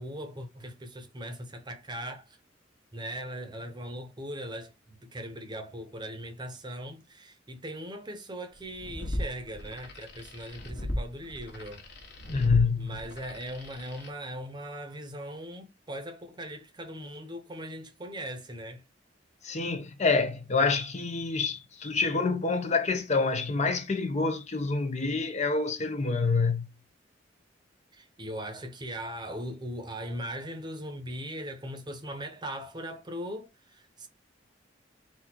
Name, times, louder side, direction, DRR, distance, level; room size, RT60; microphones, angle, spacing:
voice 1, 0.0-2.4 2.9-11.8 12.8-18.8 27.9-34.1, equal, 25° right, 0.8 m, -39 dB
sound 1, 8.6-14.1, left 1 dB, 65° left, 1.5 m, -37 dB
voice 2, 12.3-12.9 19.4-26.6, left 4 dB, 40° left, 0.7 m, -27 dB
4.2 x 2.5 x 4.4 m
head